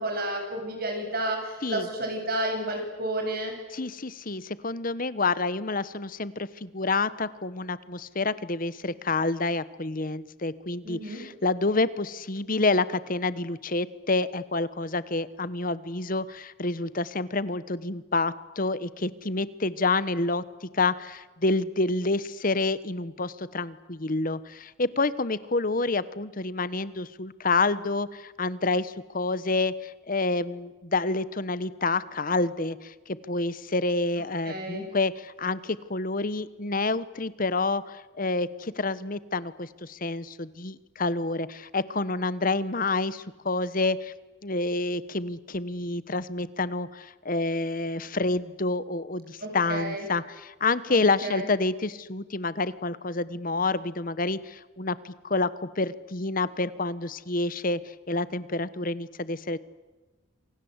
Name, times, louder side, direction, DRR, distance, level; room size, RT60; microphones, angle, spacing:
voice 1, 0.0-3.5 10.8-11.2 34.4-34.9 49.4-50.1 50.9-51.5, right 1 dB, 45° right, 3 dB, 7.9 m, -31 dB
voice 2, 3.7-44.1 44.4-55.5 55.8-57.8 58.1-59.6, left 3 dB, 40° left, 16 dB, 1.1 m, -28 dB
28.0 x 24.5 x 8.2 m, 1.2 s
head